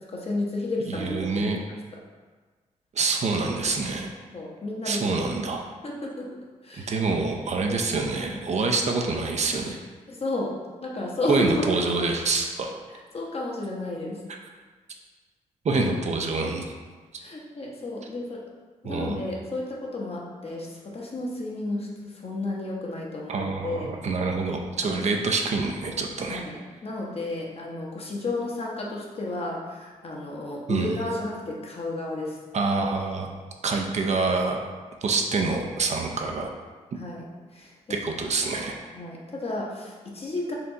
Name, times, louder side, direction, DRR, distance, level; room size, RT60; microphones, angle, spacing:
voice 1, 0.0-2.0 4.3-5.1 5.8-6.3 6.6-6.9 10.1-10.5 10.8-11.9 13.1-14.2 15.8-15.9 17.2-18.4 18.8-23.9 24.8-25.0 26.2-32.4 36.9-37.2 37.5-38.0 38.9-40.5, left 2 dB, 45° left, -2 dB, 1.0 m, -32 dB
voice 2, 0.9-1.6 2.9-4.1 4.9-5.6 6.8-9.8 11.3-12.7 15.6-16.6 18.8-19.2 23.3-26.4 30.7-31.0 32.5-33.3 33.6-34.6 35.0-36.5 37.9-38.8, right 3 dB, 55° right, 2 dB, 0.6 m, -26 dB
4.3 x 2.5 x 3.9 m, 1.4 s
cardioid pair, 65°, 14 cm